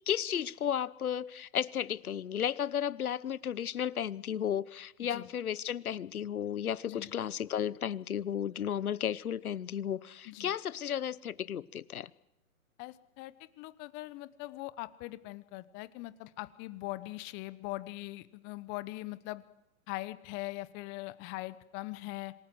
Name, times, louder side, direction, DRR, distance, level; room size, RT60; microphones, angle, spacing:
voice 1, 0.1-12.1, left 9 dB, 85° left, 20 dB, 1.0 m, -34 dB
voice 2, 12.8-19.4 19.9-22.3, left 19 dB, 25° left, 16 dB, 1.0 m, -41 dB
27.0 x 18.5 x 7.8 m, 0.87 s
hypercardioid pair, 135°, 43 cm